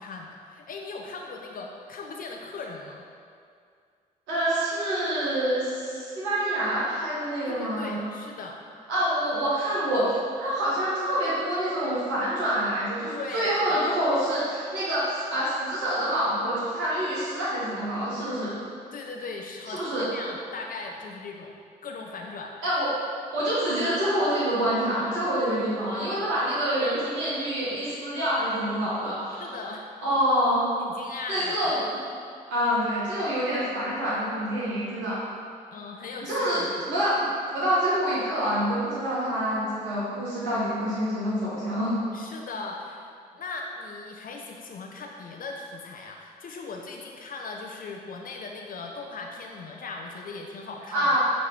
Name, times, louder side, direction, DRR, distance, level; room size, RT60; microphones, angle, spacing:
voice 1, 0.0-3.0 7.5-8.6 13.1-13.8 18.9-22.5 28.7-28.9 29.4-29.8 30.8-31.7 35.7-36.8 42.1-43.1 43.3-51.2, left 3 dB, 45° left, 1 dB, 0.6 m, -38 dB
voice 2, 4.3-8.1 8.9-18.5 19.7-20.1 22.6-22.9 23.3-29.6 30.0-30.7 31.3-31.8 32.5-35.3 36.2-37.3 37.5-41.9 50.9-51.2, equal, 70° right, -9 dB, 1.3 m, -26 dB
8.2 x 3.1 x 3.8 m, 2.3 s
hypercardioid pair, 40°, 20 cm